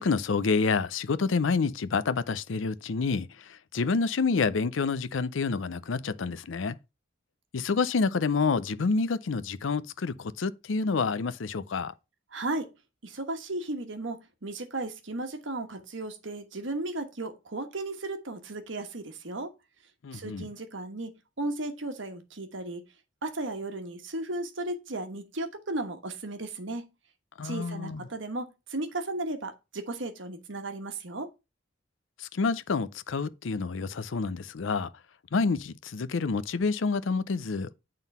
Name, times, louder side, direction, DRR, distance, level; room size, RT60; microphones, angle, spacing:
voice 1, 0.0-6.8 7.5-11.9 20.0-20.5 27.4-28.1 32.2-34.9 35.3-37.7, left 4 dB, 80° left, 0.5 m, -28 dB
voice 2, 12.3-12.7 13.0-19.5 20.1-22.8 23.2-26.9 27.4-31.3, right 2 dB, 75° right, 1.2 m, -35 dB
9.1 x 3.9 x 5.4 m
head